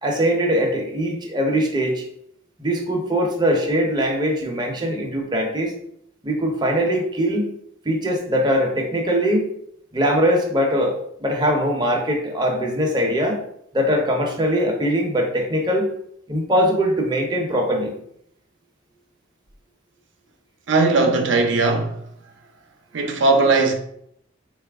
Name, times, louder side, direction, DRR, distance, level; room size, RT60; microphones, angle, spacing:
voice 1, 0.0-2.0 2.6-5.7 6.2-7.5 7.8-9.5 9.9-13.4 13.7-15.9 16.3-17.9, equal, 20° right, 0.7 m, -21 dB
voice 2, 20.7-22.1 22.9-23.7, right 3 dB, 65° right, 0.6 m, -18 dB
4.0 x 2.4 x 3.5 m
head